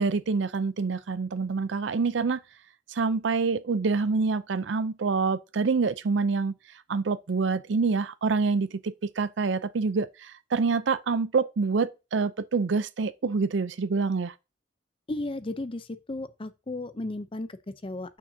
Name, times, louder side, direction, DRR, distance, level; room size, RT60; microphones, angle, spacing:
voice 1, 0.0-2.4 2.9-6.5 6.9-14.3, right 4 dB, 70° right, 0.5 m, -26 dB
voice 2, 15.1-18.2, left 2 dB, 30° left, 0.5 m, -35 dB
9.1 x 5.9 x 2.7 m
head